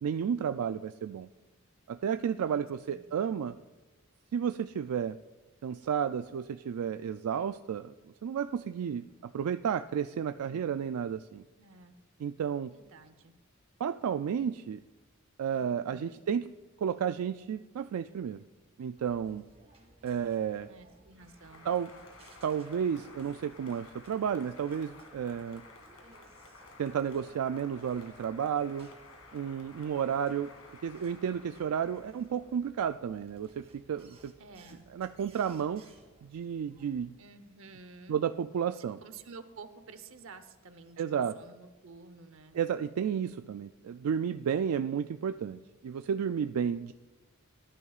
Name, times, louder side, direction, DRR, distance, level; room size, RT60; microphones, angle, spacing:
voice 1, 0.0-1.3 1.9-3.6 4.3-5.2 5.6-7.9 8.2-11.4 12.2-12.7 13.8-14.8 15.4-16.4 16.8-18.4 18.8-19.4 20.0-20.7 21.7-21.9 22.4-25.6 26.8-28.9 29.3-30.5 30.8-34.3 34.9-35.8 36.2-37.2 38.1-39.0 41.0-41.4 42.5-46.9, right 8 dB, 85° right, 10 dB, 0.3 m, -32 dB
voice 2, 2.4-3.4 10.4-10.6 11.6-12.0 12.7-13.3 15.5-16.2 20.6-21.7 34.4-34.8 37.2-38.2 38.7-42.6, right 4 dB, 65° right, 10 dB, 0.9 m, -51 dB
sound 1, 19.0-36.9, right 2 dB, 30° right, 2.1 m, -61 dB
Applause, 21.1-32.6, left 3 dB, 90° left, 2.3 m, -54 dB
18.5 x 11.0 x 2.4 m, 1.2 s
head